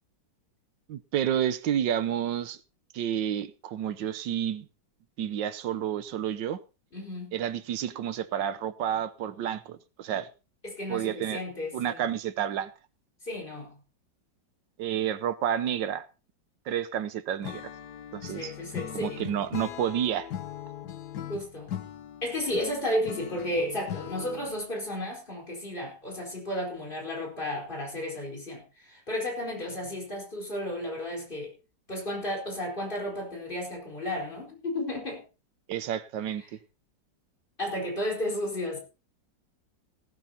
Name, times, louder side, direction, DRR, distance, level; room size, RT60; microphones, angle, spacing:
voice 1, 0.9-2.6 2.9-4.7 5.2-6.6 7.3-10.3 10.9-11.4 11.7-12.7 14.8-16.0 16.7-17.7 18.1-18.5 18.9-20.3 35.7-36.6, right 10 dB, 85° right, 1.5 m, -30 dB
voice 2, 6.9-7.4 10.6-12.1 13.2-13.8 18.3-19.2 21.3-21.7 22.2-31.5 31.9-35.2 37.6-38.8, left 1 dB, 25° left, 4.6 m, -33 dB
Acoustic guitar / Strum, 17.4-24.6, left 10 dB, 65° left, 1.5 m, -40 dB
18.5 x 12.5 x 2.8 m
omnidirectional pair, 2.0 m